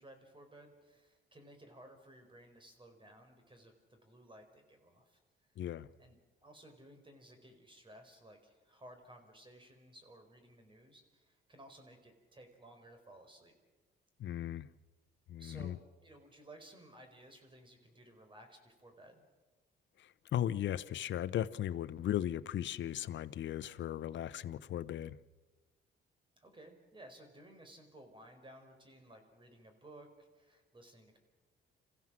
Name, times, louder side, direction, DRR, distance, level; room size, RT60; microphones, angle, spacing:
voice 1, 0.0-5.5 6.0-13.5 15.4-19.2 26.4-31.2, right 1 dB, 25° right, 4.8 m, -57 dB
voice 2, 5.6-5.9 14.2-14.7 15.3-15.8 20.0-25.2, left 11 dB, 65° left, 0.8 m, -37 dB
27.0 x 15.5 x 7.6 m
cardioid pair, 90°, 20 cm